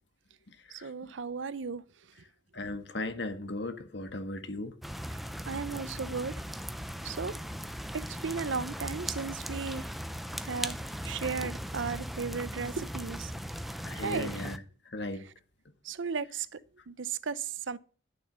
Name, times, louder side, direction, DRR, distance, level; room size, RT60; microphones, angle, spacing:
voice 1, 0.7-1.8 5.1-5.2 5.5-6.4 7.0-7.4 7.9-9.9 10.4-13.3 14.0-14.5 15.8-16.6 16.9-17.8, right 5 dB, 75° right, 0.6 m, -35 dB
voice 2, 2.5-4.7 13.8-14.6 14.9-15.2, left 2 dB, 60° left, 1.5 m, -37 dB
sound 1, 4.8-14.6, equal, ahead, 0.6 m, -38 dB
12.0 x 6.9 x 6.8 m
head